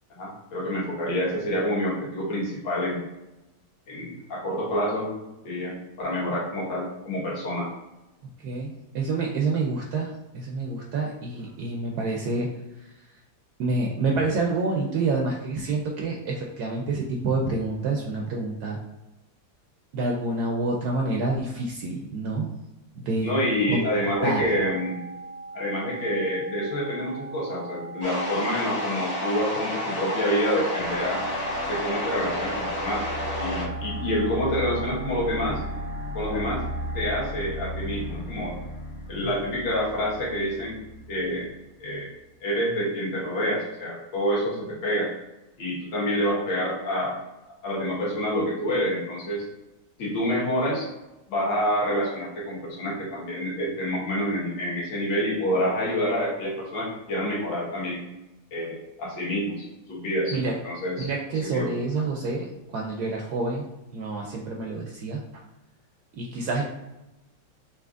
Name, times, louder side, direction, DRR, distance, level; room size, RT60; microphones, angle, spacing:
voice 1, 0.1-3.1 3.9-5.1 5.4-7.7 23.2-25.0 25.5-31.2 31.7-33.1 33.3-35.6 36.1-36.6 36.9-38.6 39.1-40.8 41.1-41.5 41.8-42.1 42.4-45.1 45.6-47.2 47.6-49.4 50.0-50.9 51.3-58.0 58.5-60.4 60.6-61.1 61.5-61.7, equal, 70° left, -5 dB, 2.0 m, -27 dB
voice 2, 8.4-12.5 13.6-18.8 19.9-22.6 22.9-23.3 23.7-23.8 24.2-24.4 39.2-39.3 60.3-60.5 61.0-65.2 66.2-66.6, right 3 dB, 70° right, -1 dB, 0.9 m, -28 dB
sound 1, 24.1-37.2, right 3 dB, 90° left, 1.4 m, -41 dB
sound 2, 28.0-33.7, left 1 dB, 20° left, 0.7 m, -31 dB
sound 3, 30.7-41.7, equal, 45° left, 0.9 m, -36 dB
5.9 x 2.8 x 2.5 m, 0.99 s
omnidirectional pair, 2.1 m